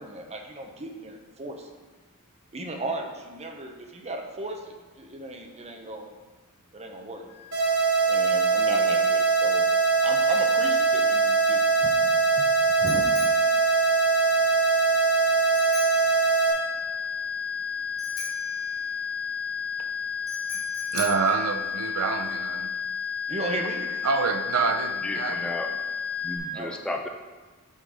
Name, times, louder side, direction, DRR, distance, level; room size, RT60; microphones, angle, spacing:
voice 1, 0.0-1.7 2.5-6.2 6.7-7.3 8.1-9.7 10.0-12.1 12.7-13.1 23.3-23.8 26.5-26.8, right 2 dB, 30° right, 3 dB, 0.8 m, -36 dB
sound 1, 7.3-26.4, left 7 dB, 90° left, 1.7 m, -32 dB
sound 2, 7.5-16.5, right 5 dB, 60° right, 2.2 m, -22 dB
Bicycle bell, 11.2-22.3, left 4 dB, 35° left, 2.3 m, -43 dB
voice 2, 20.9-22.7 24.0-25.5, right 5 dB, 90° right, 8 dB, 0.5 m, -27 dB
voice 3, 25.0-25.7 26.2-27.1, left 1 dB, 5° left, 3 dB, 0.5 m, -33 dB
8.0 x 3.9 x 4.9 m, 1.3 s
head